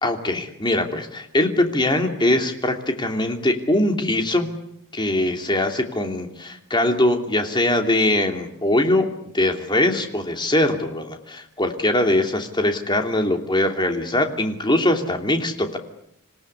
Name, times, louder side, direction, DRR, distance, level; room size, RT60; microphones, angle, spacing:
voice 1, 0.0-4.5 4.9-15.8, left 1 dB, 20° left, 4 dB, 2.9 m, -22 dB
27.0 x 18.0 x 9.9 m, 0.76 s
head